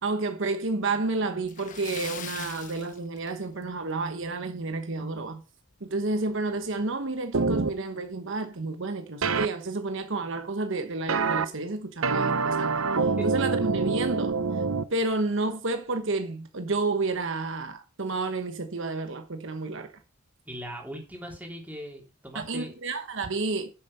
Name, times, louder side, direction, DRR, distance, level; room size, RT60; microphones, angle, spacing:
voice 1, 0.0-5.4 5.8-14.3 14.9-19.9 22.3-23.7, right 3 dB, 65° right, 1.1 m, -30 dB
Splash splatter, 1.4-3.8 4.1-4.3 4.7-4.8 6.3-6.4 6.7-6.8 7.4-7.7, left 8 dB, 40° left, 1.1 m, -41 dB
sound 1, 7.3-7.7 9.2-9.5 11.1-11.4 12.0-14.8, right 4 dB, 85° right, 0.8 m, -25 dB
voice 2, 20.4-22.7, equal, 10° right, 3.3 m, -39 dB
9.9 x 7.4 x 5.4 m
head